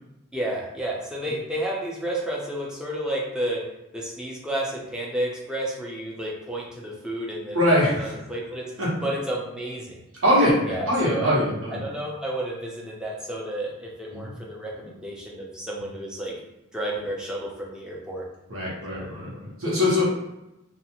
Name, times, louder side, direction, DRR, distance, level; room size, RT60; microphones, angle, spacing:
voice 1, 0.3-3.6 3.9-7.7 8.0-8.6 9.0-10.0 10.7-11.3 11.8-16.3 16.7-18.2 18.9-19.1, right 1 dB, 5° right, -3 dB, 0.5 m, -31 dB
voice 2, 7.5-8.1 8.8-8.9 10.2-11.8 14.1-14.3 18.5-20.0, left 1 dB, 90° right, -6 dB, 1.1 m, -22 dB
2.5 x 2.4 x 2.9 m, 0.92 s
head